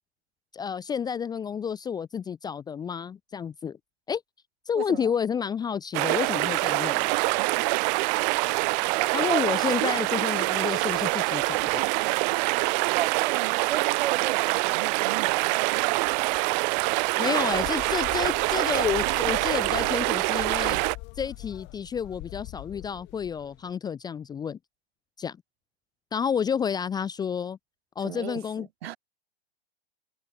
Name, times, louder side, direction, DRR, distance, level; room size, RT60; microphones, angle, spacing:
voice 1, 0.5-3.8 4.1-4.2 4.7-7.1 9.1-11.9 17.2-20.8 21.2-24.6 25.2-25.4 26.1-27.6 28.0-28.7, left 7 dB, 10° left, 0.8 m, -30 dB
sound 1, 5.9-21.0, right 30 dB, 40° right, 2.0 m, -25 dB
voice 2, 7.5-8.5 9.0-9.4 12.8-15.9 28.0-28.4 28.8-29.0, right 12 dB, 65° right, 3.0 m, -35 dB
sound 2, 17.4-23.7, left 25 dB, 35° left, 2.2 m, -42 dB
hypercardioid pair, 140°, 33 cm